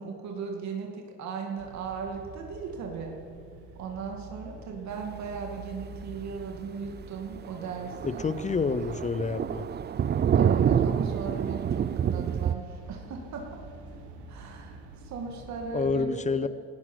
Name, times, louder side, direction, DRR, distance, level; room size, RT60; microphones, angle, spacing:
voice 1, 0.0-3.2 3.8-8.2 10.3-13.5 14.3-14.8 15.0-16.5, right 5 dB, 70° right, 1 dB, 2.4 m, -37 dB
sound 1, 1.6-15.9, right 3 dB, 85° right, 1.9 m, -47 dB
Thunder, 5.6-5.8 6.1-6.2 6.6-6.7 7.0-7.1 7.3-12.6, right 8 dB, 35° right, 0.5 m, -27 dB
voice 2, 8.0-9.7 15.7-16.5, left 4 dB, 25° left, 16 dB, 0.7 m, -28 dB
18.5 x 12.5 x 6.3 m, 2.2 s
cardioid pair, 90°, 29 cm